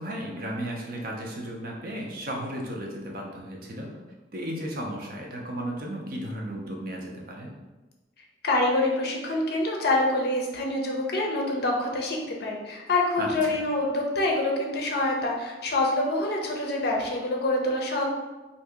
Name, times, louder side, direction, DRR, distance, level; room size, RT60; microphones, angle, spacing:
voice 1, 0.0-4.0 4.3-7.5 13.2-13.7, right 1 dB, 50° right, -1 dB, 0.6 m, -34 dB
voice 2, 8.4-18.1, left 2 dB, 60° left, 0 dB, 0.6 m, -26 dB
2.7 x 2.7 x 3.5 m, 1.2 s
head